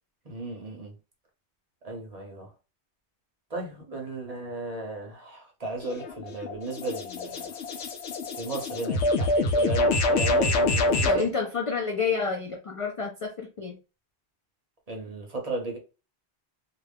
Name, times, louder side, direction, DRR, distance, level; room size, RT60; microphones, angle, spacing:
voice 1, 0.3-0.9 1.8-2.5 3.5-7.5 8.4-11.2 14.9-15.8, right 2 dB, 40° right, 0.7 m, -35 dB
sound 1, 5.8-11.2, left 2 dB, 75° left, 0.8 m, -26 dB
voice 2, 11.1-13.8, left 5 dB, 55° left, 0.3 m, -29 dB
2.4 x 2.2 x 3.3 m
omnidirectional pair, 1.2 m